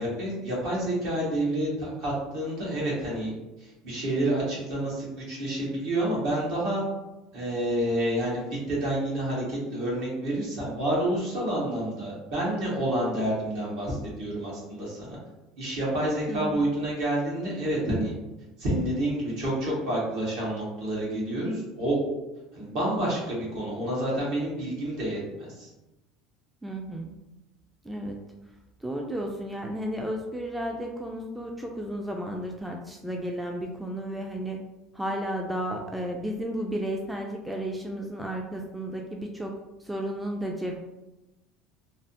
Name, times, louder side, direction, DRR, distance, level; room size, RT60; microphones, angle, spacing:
voice 1, 0.0-3.3 3.6-6.8 7.3-8.4 8.7-15.2 15.6-18.1 18.6-22.0 22.5-25.7, right 1 dB, 65° right, -5 dB, 1.5 m, -29 dB
voice 2, 16.3-16.7 26.6-27.1 27.8-28.2 28.8-34.6 34.9-39.5 39.8-40.8, equal, 5° right, 1 dB, 0.3 m, -33 dB
3.2 x 2.0 x 2.7 m, 0.99 s
supercardioid pair, 115°, 0 cm